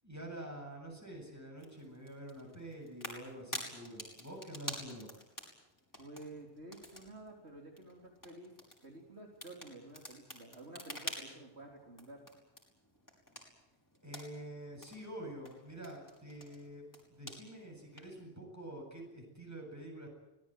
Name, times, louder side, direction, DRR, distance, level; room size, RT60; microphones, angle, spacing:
voice 1, 0.0-5.1 14.0-16.8 17.1-20.1, right 1 dB, 15° right, 1 dB, 8.1 m, -47 dB
sound 1, 1.6-18.2, left 1 dB, 15° left, 5.6 m, -50 dB
voice 2, 6.0-8.5 8.8-12.2, right 2 dB, 70° right, 0 dB, 4.2 m, -51 dB
25.0 x 19.0 x 9.3 m, 0.92 s
omnidirectional pair, 1.2 m